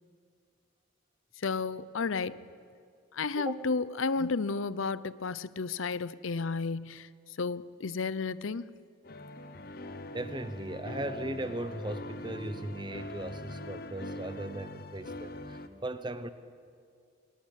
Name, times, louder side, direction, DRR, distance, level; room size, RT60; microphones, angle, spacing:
voice 1, 1.4-2.4 3.1-7.1 7.4-8.6, left 4 dB, 75° left, 17 dB, 0.6 m, -32 dB
sound 1, 9.0-15.7, left 1 dB, 45° left, 1.1 m, -42 dB
voice 2, 10.1-16.3, right 1 dB, 20° right, 11 dB, 0.9 m, -38 dB
22.5 x 18.5 x 10.0 m, 2.3 s
head